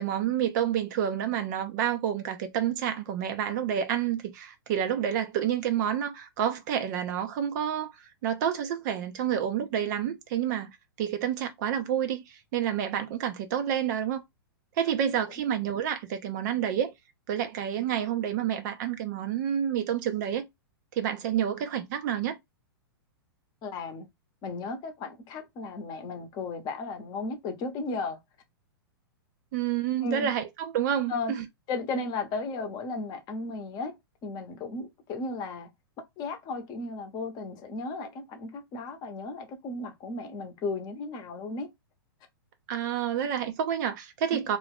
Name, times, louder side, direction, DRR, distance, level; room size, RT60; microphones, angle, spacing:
voice 1, 0.0-7.9 8.2-10.7 11.0-14.2 14.8-16.9 17.3-20.5 20.9-22.4 29.5-31.4 42.7-44.6, right 9 dB, 50° right, 0.5 m, -29 dB
voice 2, 23.6-24.1 24.4-28.2 30.0-30.3 31.1-31.3 31.7-35.7 36.2-41.7 44.3-44.4, left 3 dB, 35° left, 0.8 m, -35 dB
2.5 x 2.3 x 3.4 m
hypercardioid pair, 120°, 13 cm